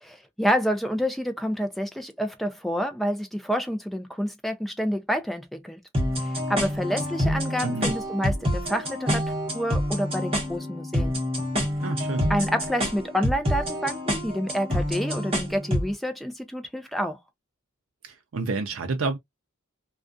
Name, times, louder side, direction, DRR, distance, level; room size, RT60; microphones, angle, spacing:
voice 1, 0.0-5.8 6.2-9.2 9.5-11.2 12.3-17.2, equal, ahead, 0.3 m, -28 dB
sound 1, 5.9-15.9, equal, 25° right, 0.9 m, -27 dB
voice 2, 7.6-7.9 11.8-12.3 18.0-19.2, right 3 dB, 70° right, 0.4 m, -29 dB
2.4 x 2.2 x 2.4 m
head